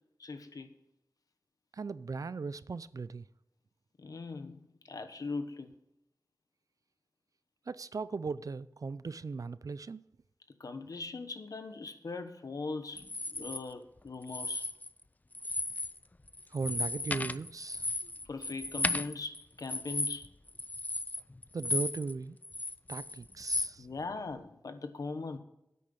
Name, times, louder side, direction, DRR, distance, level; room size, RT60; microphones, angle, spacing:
voice 1, 0.2-0.7 4.0-4.6 4.8-5.7 10.6-14.7 18.3-20.3 23.8-25.4, left 3 dB, 90° left, 1.1 m, -40 dB
voice 2, 1.7-3.2 7.7-10.0 16.5-17.9 21.5-22.4 22.9-23.9, right 4 dB, 75° right, 0.5 m, -38 dB
sound 1, 13.0-13.6 14.2-15.0 15.3-16.0 16.3-22.1 22.4-23.7, left 2 dB, 25° left, 0.4 m, -35 dB
10.0 x 8.4 x 5.3 m
wide cardioid pair, 80°, 6 cm